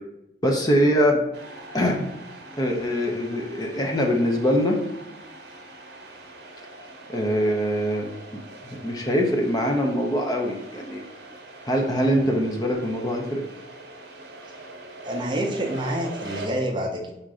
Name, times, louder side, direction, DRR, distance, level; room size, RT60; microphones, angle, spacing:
voice 1, 0.4-1.1 1.7-2.1 2.6-4.8 7.1-8.1 8.7-11.0 11.6-13.4, equal, 20° left, 1 dB, 0.6 m, -23 dB
sound 1, 1.3-16.5, right 2 dB, 75° right, 0.8 m, -43 dB
voice 2, 15.0-17.1, right 1 dB, 25° right, 1 dB, 0.6 m, -27 dB
4.3 x 2.6 x 4.8 m, 0.86 s
head